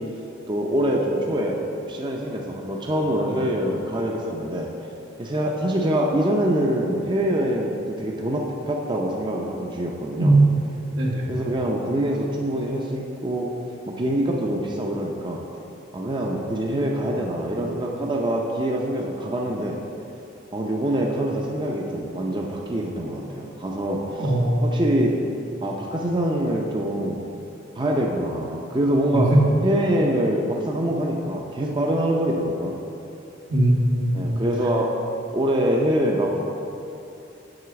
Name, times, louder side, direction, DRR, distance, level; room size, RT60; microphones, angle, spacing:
voice 1, 0.5-1.6 1.9-4.7 5.2-10.4 11.3-13.5 13.9-15.4 15.9-19.8 20.5-24.2 24.6-25.1 25.6-27.3 27.8-29.3 29.6-32.8 34.1-34.9 35.3-36.3, right 1 dB, 25° right, -1 dB, 0.6 m, -24 dB
voice 2, 10.2-10.6 11.0-11.3 24.2-24.8 29.1-29.4 33.5-34.4, right 1 dB, 75° right, -3 dB, 1.6 m, -19 dB
8.0 x 4.9 x 6.9 m, 2.8 s
head